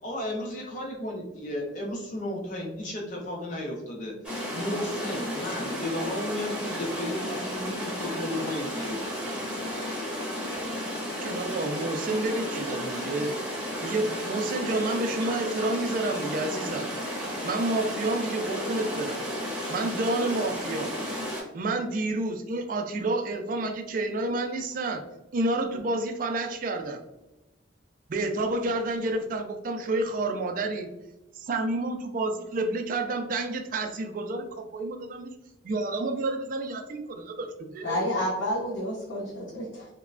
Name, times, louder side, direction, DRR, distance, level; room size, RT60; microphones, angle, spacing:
voice 1, 0.0-4.1 4.5-9.0, left 1 dB, 40° left, -1 dB, 0.5 m, -33 dB
sound 1, 4.2-21.4, equal, 5° right, 0.7 m, -33 dB
voice 2, 11.2-13.4 13.8-16.9 17.4-19.2 19.7-20.9 21.5-25.0 25.3-27.0 28.1-30.9 31.3-35.3 35.6-38.0, right 2 dB, 45° right, 5 dB, 0.3 m, -29 dB
voice 3, 37.8-39.9, equal, 70° left, -6 dB, 0.7 m, -30 dB
3.0 x 2.1 x 2.4 m, 0.97 s
head